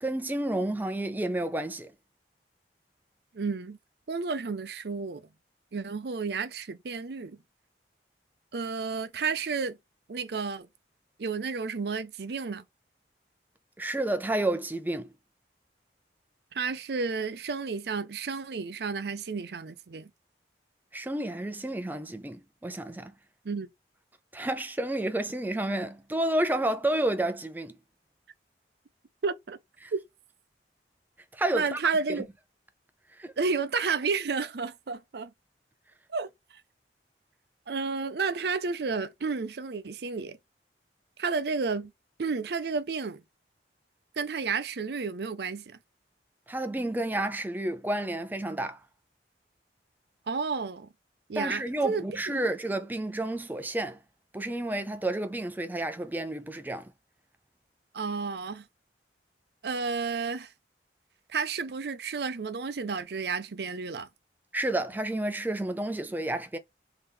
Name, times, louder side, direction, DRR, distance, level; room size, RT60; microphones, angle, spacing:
voice 1, 0.0-1.9 13.8-15.1 20.9-23.1 24.3-27.7 29.8-29.9 31.3-31.8 32.1-32.2 33.1-33.3 46.5-48.8 51.3-54.0 54.3-56.9 64.5-66.6, right 1 dB, 10° right, 0.3 m, -30 dB
voice 2, 3.3-3.8 4.1-5.3 5.7-7.4 8.5-9.8 10.1-10.7 11.2-12.6 16.5-20.1 23.4-23.7 29.2-29.6 29.9-30.0 31.5-32.3 33.4-35.3 36.1-36.3 37.7-40.4 41.2-41.9 42.2-43.2 44.2-45.8 50.3-50.9 51.3-52.4 57.9-58.6 59.6-60.5 61.3-64.1, right 4 dB, 65° right, 0.5 m, -31 dB
3.4 x 2.8 x 3.4 m
head